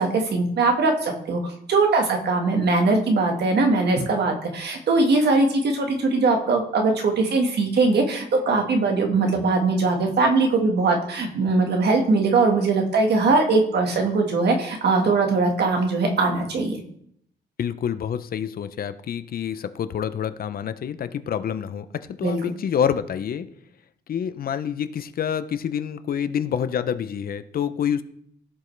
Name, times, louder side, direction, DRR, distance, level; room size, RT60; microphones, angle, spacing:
voice 1, 0.0-16.8 22.2-22.4, right 3 dB, 60° right, 3 dB, 1.5 m, -21 dB
voice 2, 17.6-23.5 24.1-28.0, left 8 dB, 50° left, 13 dB, 0.5 m, -27 dB
16.0 x 5.3 x 3.2 m, 0.69 s
wide cardioid pair, 170°, 19 cm